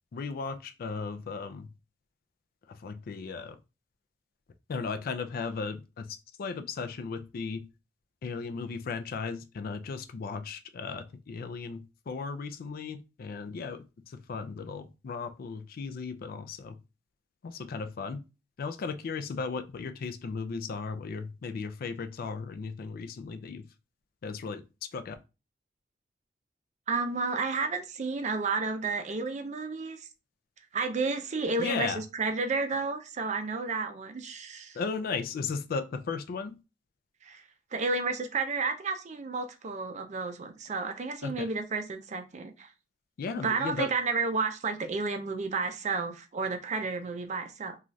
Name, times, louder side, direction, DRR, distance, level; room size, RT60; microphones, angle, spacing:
voice 1, 0.1-1.7 2.7-3.6 4.7-7.7 8.2-16.8 17.4-18.2 18.6-23.7 24.2-25.2 31.6-32.0 34.7-36.6 41.2-41.5 43.2-43.9, left 4 dB, 55° left, 0.3 m, -36 dB
voice 2, 26.9-30.1 30.7-34.8 37.2-37.4 37.7-42.7 43.4-47.8, right 4 dB, 40° right, 0.4 m, -31 dB
3.1 x 2.3 x 2.5 m
head